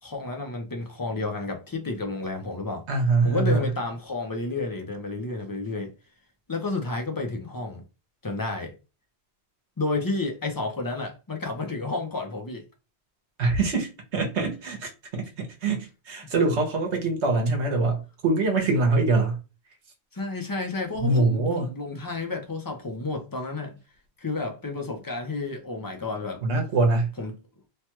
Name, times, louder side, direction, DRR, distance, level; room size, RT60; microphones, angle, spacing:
voice 1, 0.0-2.8 3.2-5.9 6.5-7.8 8.2-8.7 9.8-12.6 20.1-23.8 24.2-26.5 27.2-27.3, left 3 dB, 25° left, 0.5 m, -31 dB
voice 2, 2.9-3.7 13.4-19.4 21.0-21.7 26.4-27.1, right 3 dB, 90° right, 1.2 m, -24 dB
3.2 x 2.2 x 2.9 m
omnidirectional pair, 1.1 m